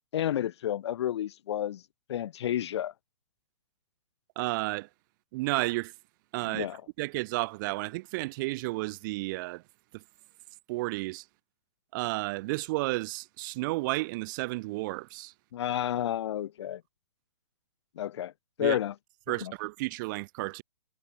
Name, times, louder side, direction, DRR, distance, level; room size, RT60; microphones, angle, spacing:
voice 1, 0.1-1.8 2.1-2.9 6.5-6.8 15.5-16.8 18.0-18.3 18.6-18.9 19.4-19.5, left 11 dB, 60° left, 0.8 m, -30 dB
voice 2, 4.4-4.9 5.3-5.9 6.3-6.7 7.0-9.6 9.9-10.0 10.7-11.2 11.9-15.3 18.6-18.8 19.3-20.6, right 22 dB, 40° right, 1.1 m, -32 dB
hypercardioid pair, 125°, 16 cm